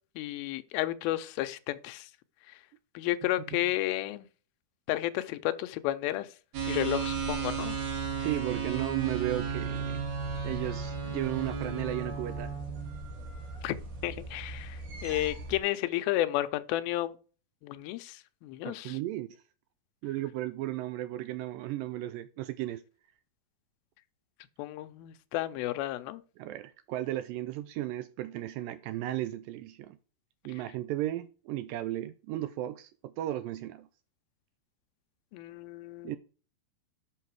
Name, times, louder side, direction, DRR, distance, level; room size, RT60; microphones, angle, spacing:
voice 1, 0.2-2.1 3.0-4.3 4.9-6.3 6.7-7.8 13.6-13.7 14.0-17.2 17.6-19.0 24.6-26.2 35.3-36.2, left 15 dB, 85° left, 2.4 m, -32 dB
sound 1, 6.5-15.6, right 5 dB, 65° right, 3.1 m, -35 dB
voice 2, 8.2-10.1 10.4-12.5 18.7-19.3 20.0-22.8 26.4-30.0 30.5-33.9 36.0-36.2, right 14 dB, 85° right, 2.0 m, -35 dB
6.6 x 6.4 x 4.6 m
omnidirectional pair, 4.3 m